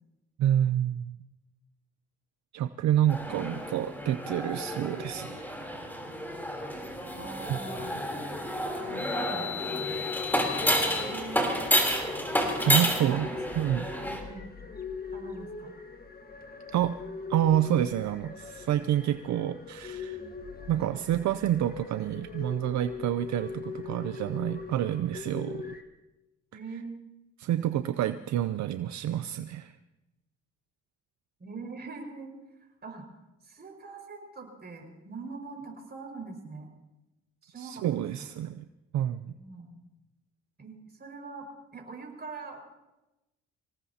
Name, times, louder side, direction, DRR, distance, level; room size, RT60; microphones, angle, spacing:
voice 1, 0.4-1.2 2.5-5.5 7.5-7.6 12.7-13.9 16.7-17.0 17.3-20.2 20.7-25.7 26.5-26.8 27.4-29.7 37.5-38.7 38.9-39.3, right 11 dB, 65° right, 11 dB, 0.6 m, -28 dB
sound 1, 3.1-14.2, equal, 5° left, 3.3 m, -30 dB
voice 2, 3.3-3.6 7.2-7.9 9.1-10.0 10.8-11.5 12.6-13.6 14.2-14.6 15.1-15.7 26.5-27.0 31.4-32.3 32.8-33.1 33.4-36.7 37.4-38.3 39.4-39.8 40.6-41.5 41.7-42.6, right 4 dB, 35° right, 2 dB, 5.4 m, -43 dB
sound 2, 7.7-25.8, left 5 dB, 30° left, 1.6 m, -42 dB
25.0 x 18.5 x 2.8 m, 0.99 s
cardioid pair, 90°, 30 cm